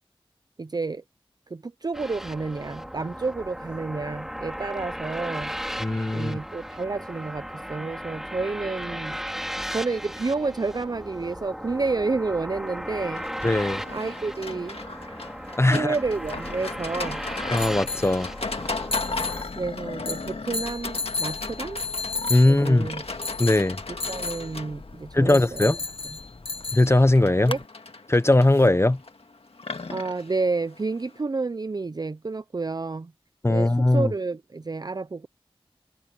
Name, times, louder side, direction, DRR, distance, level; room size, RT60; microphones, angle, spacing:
voice 1, 0.6-1.0 1.5-5.5 6.1-9.2 9.7-13.2 13.9-14.8 15.7-17.2 19.6-21.8 22.4-23.0 23.9-25.7 27.5-27.6 29.9-33.1 33.5-35.3, right 3 dB, 45° right, 0.4 m, -30 dB
sound 1, 1.9-19.4, equal, 5° right, 3.2 m, -36 dB
voice 2, 5.8-6.4 13.4-13.8 15.6-15.9 17.5-18.3 22.3-22.9 23.4-23.8 25.1-25.8 26.7-27.5 28.1-29.0 33.4-34.1, left 2 dB, 25° left, 0.7 m, -20 dB
Livestock farm animals working animals, 13.2-31.2, left 3 dB, 85° left, 1.8 m, -37 dB
sound 2, 16.1-27.6, left 3 dB, 65° left, 1.3 m, -35 dB
wide cardioid pair, 55°, 10 cm